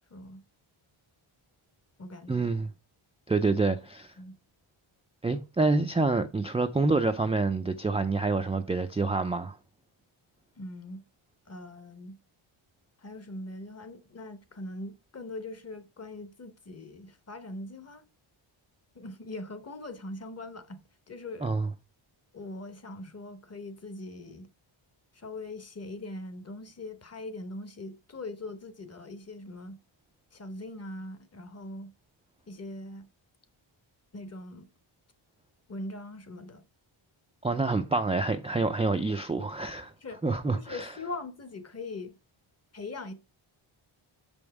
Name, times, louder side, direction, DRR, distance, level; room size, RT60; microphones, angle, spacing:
voice 1, 0.1-0.4 2.0-2.5 4.2-4.4 10.6-11.0 11.5-12.2 13.0-18.0 18.9-21.6 22.3-24.5 25.1-29.8 30.3-31.9 32.5-33.1 34.1-34.7 35.7-36.6 40.0-40.2 40.5-42.1 42.7-43.1, left 2 dB, 30° left, 0.9 m, -41 dB
voice 2, 2.3-2.7 3.3-4.1 5.2-9.6 21.4-21.7 37.4-39.9 40.2-40.9, right 3 dB, 15° right, 0.3 m, -27 dB
6.9 x 5.3 x 4.7 m
wide cardioid pair, 170°, 50 cm